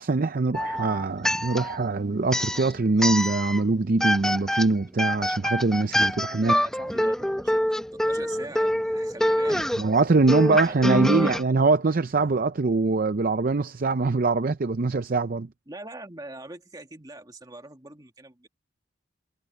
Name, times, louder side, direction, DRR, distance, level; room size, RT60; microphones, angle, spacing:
voice 1, 0.0-6.6 9.8-15.5, right 3 dB, 45° right, 0.5 m, -23 dB
sound 1, 0.5-1.9 2.3-3.7 4.0-11.4, equal, 5° left, 1.0 m, -26 dB
voice 2, 6.4-9.7 10.5-11.4 15.7-18.5, right 2 dB, 20° right, 2.1 m, -42 dB
sound 2, 6.6-7.7 9.0-10.6 11.9-12.9, equal, 60° right, 7.8 m, -56 dB
head